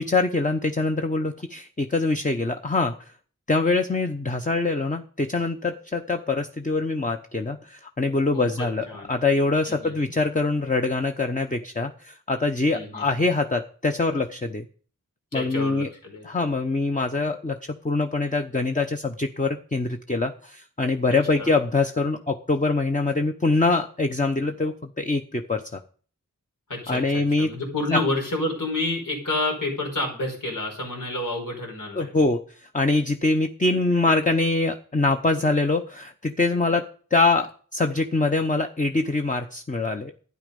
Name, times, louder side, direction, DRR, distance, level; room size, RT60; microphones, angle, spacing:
voice 1, 0.0-3.1 3.5-14.7 15.3-15.9 16.2-17.6 17.8-25.8 26.9-27.5 27.9-28.0 32.0-36.9 37.1-40.1, left 3 dB, 25° left, 5 dB, 0.9 m, -24 dB
voice 2, 8.3-9.1 9.7-10.0 12.7-13.3 15.3-16.3 21.4-21.5 26.7-32.1, left 2 dB, 80° left, 1 dB, 5.3 m, -29 dB
12.5 x 9.6 x 5.3 m, 0.43 s
wide cardioid pair, 80°, 31 cm